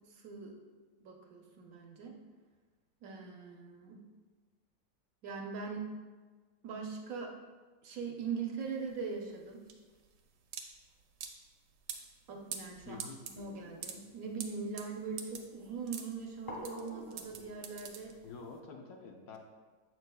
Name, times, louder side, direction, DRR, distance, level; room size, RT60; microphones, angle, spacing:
voice 1, 0.1-0.6 1.0-2.2 3.0-4.0 5.2-5.9 6.6-7.3 7.8-9.6 12.3-13.0 13.3-18.2, right 5 dB, 65° right, 1 dB, 1.0 m, -41 dB
sound 1, 8.6-18.5, right 7 dB, 85° right, 1.2 m, -46 dB
voice 2, 12.8-13.2 18.2-19.4, left 4 dB, 65° left, 2 dB, 1.1 m, -48 dB
sound 2, 13.3-18.4, left 1 dB, 15° left, 0.9 m, -52 dB
7.4 x 6.1 x 2.2 m, 1.4 s
omnidirectional pair, 1.8 m